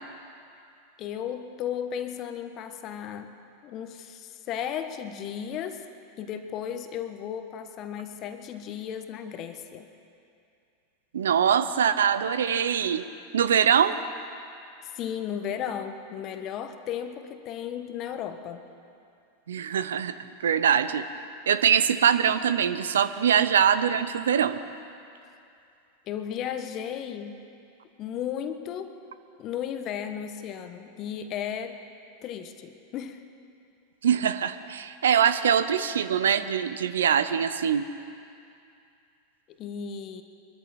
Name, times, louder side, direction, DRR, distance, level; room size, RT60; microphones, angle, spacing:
voice 1, 1.0-3.3 3.6-5.8 6.2-9.9 14.8-18.6 26.1-27.4 28.0-29.0 29.4-31.8 32.2-33.2 39.6-40.2, left 9 dB, 45° left, 8 dB, 1.2 m, -35 dB
voice 2, 11.1-13.1 13.3-14.0 19.5-20.1 20.4-21.0 21.5-24.6 34.0-37.8, right 8 dB, 75° right, 12 dB, 0.7 m, -23 dB
23.0 x 13.5 x 4.3 m, 2.5 s
hypercardioid pair, 95°, 0 cm